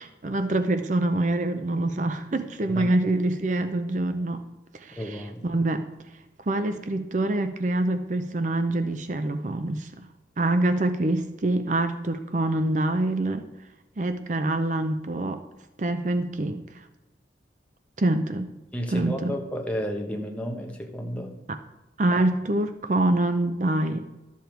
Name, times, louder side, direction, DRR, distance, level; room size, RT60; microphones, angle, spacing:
voice 1, 0.0-4.5 4.7-5.9 6.5-10.1 10.4-13.5 14.0-15.4 15.8-16.9 18.0-18.5 18.9-19.3 22.0-24.0, right 2 dB, 45° right, 8 dB, 0.5 m, -25 dB
voice 2, 2.6-3.0 5.0-5.4 18.7-21.3 22.1-22.2, equal, 10° left, 2 dB, 1.2 m, -32 dB
12.0 x 7.1 x 4.5 m, 1.1 s
head